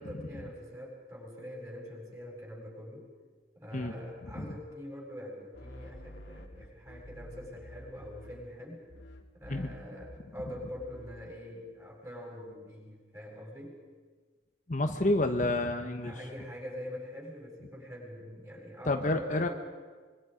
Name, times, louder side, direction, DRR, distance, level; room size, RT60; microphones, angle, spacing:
voice 1, 0.0-3.1 3.6-8.8 9.3-13.8 16.0-19.5, equal, 15° right, -3 dB, 7.3 m, -44 dB
sound 1, 5.5-8.6 8.9-11.4, left 1 dB, 85° left, 2.3 m, -49 dB
voice 2, 14.7-16.2 18.8-19.5, left 2 dB, 45° left, 5 dB, 1.1 m, -29 dB
25.5 x 25.0 x 5.2 m, 1.4 s
head